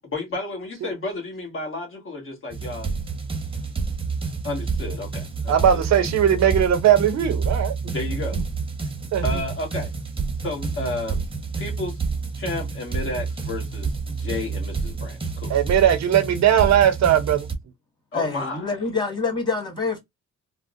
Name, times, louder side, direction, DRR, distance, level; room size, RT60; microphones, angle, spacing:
voice 1, 0.1-2.9 4.4-5.8 7.9-8.4 9.2-9.9 10.4-11.2 11.6-12.0 12.3-15.6 18.1-18.9, left 2 dB, 45° left, 1.5 m, -32 dB
sound 1, 2.5-17.6, right 4 dB, 20° right, 0.8 m, -29 dB
voice 2, 5.5-7.7 9.1-9.4 15.5-17.5, right 9 dB, 65° right, 0.7 m, -19 dB
voice 3, 18.1-20.0, left 4 dB, 15° left, 1.7 m, -26 dB
3.4 x 2.1 x 2.4 m
cardioid pair, 90°, 30 cm